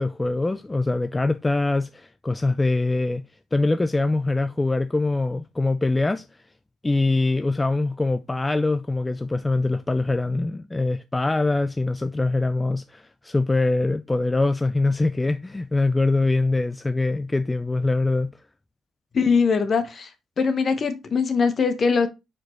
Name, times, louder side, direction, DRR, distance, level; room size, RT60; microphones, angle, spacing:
voice 1, 0.0-3.2 3.5-6.4 6.8-18.3, left 2 dB, 15° left, 0.3 m, -23 dB
voice 2, 19.1-20.1 20.4-22.1, left 5 dB, 45° left, 1.1 m, -21 dB
5.0 x 4.4 x 4.4 m
cardioid pair, 90°, 0 cm